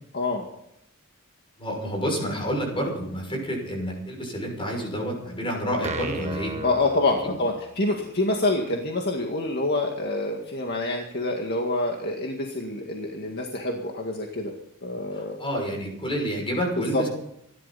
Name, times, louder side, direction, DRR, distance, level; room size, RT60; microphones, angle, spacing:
voice 1, 0.1-0.4 6.6-14.5 14.8-15.4 16.8-17.1, left 2 dB, 50° left, 1 dB, 2.0 m, -26 dB
voice 2, 1.6-6.6 7.2-7.3 15.1-17.1, equal, 25° left, 0 dB, 6.4 m, -29 dB
sound 1, 5.8-7.8, right 3 dB, 30° right, 1.6 m, -35 dB
26.5 x 12.0 x 4.2 m, 0.76 s
head